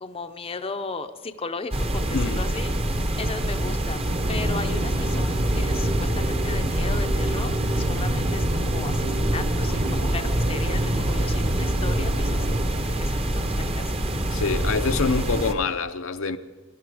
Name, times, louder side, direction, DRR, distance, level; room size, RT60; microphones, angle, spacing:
voice 1, 0.0-2.7 3.2-13.9, left 4 dB, 25° left, 0.6 m, -36 dB
sound 1, 1.7-15.5, right 1 dB, 30° right, 0.9 m, -26 dB
sound 2, 4.0-12.6, right 1 dB, 45° right, 1.3 m, -28 dB
voice 2, 14.3-16.4, left 4 dB, 65° left, 0.7 m, -26 dB
19.0 x 11.5 x 4.9 m
head